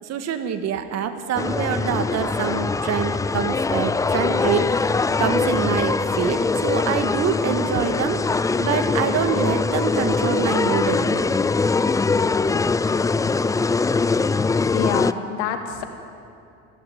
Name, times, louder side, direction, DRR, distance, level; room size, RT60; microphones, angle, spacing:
voice 1, 0.0-11.3, right 7 dB, 50° right, 8 dB, 1.9 m, -26 dB
sound 1, 1.4-15.1, left 4 dB, 10° left, 0.4 m, -22 dB
voice 2, 14.7-15.8, left 8 dB, 75° left, 5 dB, 2.5 m, -27 dB
19.5 x 15.5 x 9.6 m, 2.6 s
hypercardioid pair, 90°, 34 cm